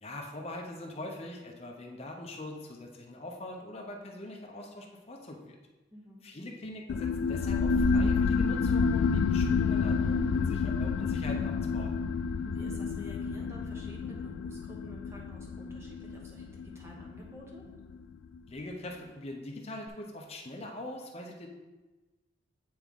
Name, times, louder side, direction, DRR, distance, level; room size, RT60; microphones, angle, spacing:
voice 1, 0.0-5.6 6.2-11.9 18.5-21.5, left 1 dB, 35° left, 1 dB, 0.8 m, -42 dB
voice 2, 5.9-6.2 12.4-17.6, left 1 dB, 15° right, -2 dB, 1.1 m, -50 dB
sound 1, 6.9-18.0, left 5 dB, 80° left, 0.3 m, -29 dB
8.7 x 3.6 x 3.7 m, 1.2 s
head